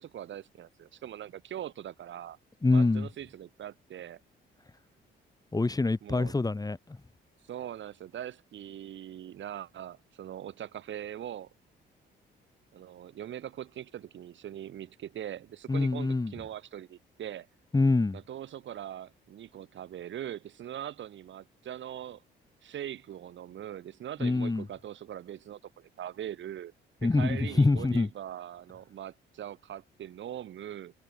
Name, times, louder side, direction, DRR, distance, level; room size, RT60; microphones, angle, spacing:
voice 1, 0.0-2.4 2.7-4.2 6.0-6.4 7.4-11.5 12.7-17.5 18.1-22.2 22.6-26.7 27.0-30.9, right 11 dB, 70° right, 5.9 m, -41 dB
voice 2, 2.6-3.1 5.5-6.8 15.7-16.3 17.7-18.2 24.2-24.7 27.0-28.1, left 3 dB, 20° left, 2.3 m, -25 dB
cardioid pair, 90°, 20 cm